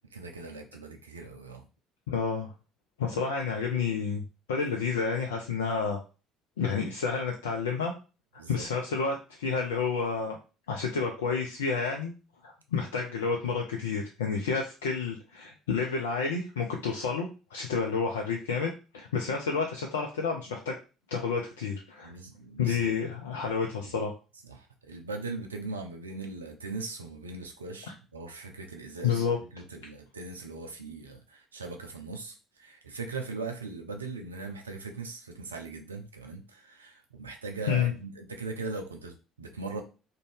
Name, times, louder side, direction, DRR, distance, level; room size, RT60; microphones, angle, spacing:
voice 1, 0.1-1.7 8.4-8.6 22.0-22.9 24.5-29.3 29.5-39.8, right 3 dB, 85° right, 4 dB, 0.4 m, -40 dB
voice 2, 2.1-2.5 3.0-4.2 4.5-6.0 6.6-7.9 8.5-10.4 10.7-12.1 12.4-20.7 21.1-22.1 22.6-24.1 29.0-29.4 37.7-37.9, left 5 dB, 75° left, 1 dB, 0.4 m, -30 dB
2.6 x 2.1 x 3.2 m, 0.32 s
figure-of-eight pair, 55°, 0 cm